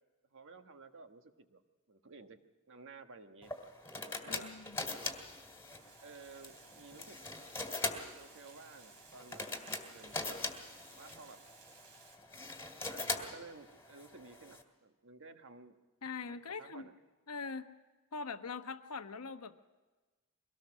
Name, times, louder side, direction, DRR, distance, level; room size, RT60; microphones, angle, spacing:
voice 1, 0.3-1.6 1.9-2.4 2.7-3.5 4.2-4.5 6.0-7.2 8.2-9.4 9.9-10.1 10.9-11.4 12.8-15.7 16.3-16.9, right 3 dB, 60° right, 7 dB, 1.3 m, -54 dB
sound 1, 3.4-14.6, left 3 dB, 10° left, 2.2 m, -42 dB
voice 2, 4.3-4.8 16.0-16.9 17.3-17.7 18.1-19.7, left 4 dB, 85° left, 9 dB, 1.0 m, -42 dB
Water, 5.8-12.2, right 5 dB, 90° right, 3.1 m, -59 dB
23.0 x 18.5 x 6.2 m, 1.3 s
head